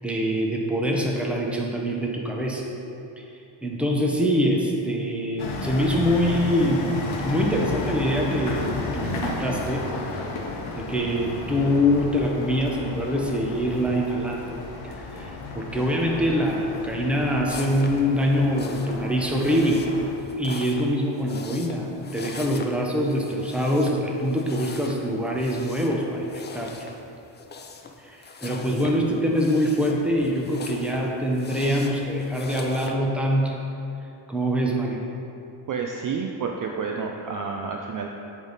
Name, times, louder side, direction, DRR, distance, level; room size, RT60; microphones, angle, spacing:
voice 1, 0.0-2.7 3.2-3.3 3.6-7.0 7.2-9.9 10.8-19.9 20.4-26.9 28.0-33.6 34.3-35.0, equal, ahead, -1 dB, 0.8 m, -24 dB
sound 1, 5.4-20.1, left 3 dB, 70° left, 1.0 m, -33 dB
sound 2, 17.5-32.9, left 4 dB, 25° left, 0.3 m, -41 dB
voice 2, 35.7-38.1, right 5 dB, 45° right, 1 dB, 0.4 m, -29 dB
8.6 x 3.6 x 4.0 m, 2.7 s
cardioid pair, 105°, 49 cm